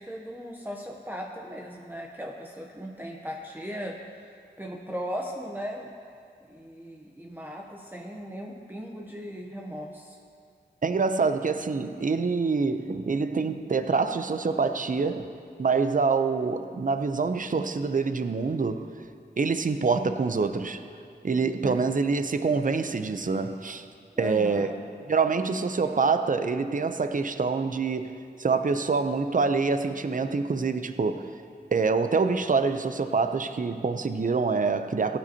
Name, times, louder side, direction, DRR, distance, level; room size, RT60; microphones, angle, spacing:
voice 1, 0.0-4.3 4.6-5.9 6.5-10.2 21.6-21.8 24.1-24.8, equal, 10° right, -1 dB, 0.7 m, -37 dB
voice 2, 10.8-15.3 15.6-18.9 19.4-20.8 21.2-23.8 24.2-24.7 25.1-28.1 28.4-31.3 31.7-35.2, right 4 dB, 50° right, 9 dB, 0.6 m, -26 dB
16.5 x 8.9 x 2.8 m, 2.4 s
wide cardioid pair, 55°, 18 cm